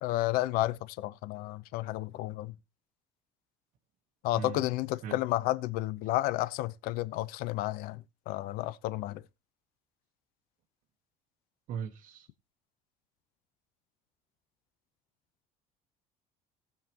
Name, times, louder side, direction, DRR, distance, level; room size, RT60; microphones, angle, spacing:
voice 1, 0.0-2.5 4.2-9.2, left 16 dB, 75° left, 0.7 m, -32 dB
voice 2, 4.3-4.7 5.0-5.2 11.7-12.3, right 8 dB, 60° right, 1.2 m, -39 dB
18.5 x 7.4 x 2.9 m
cardioid pair, 145°, 15 cm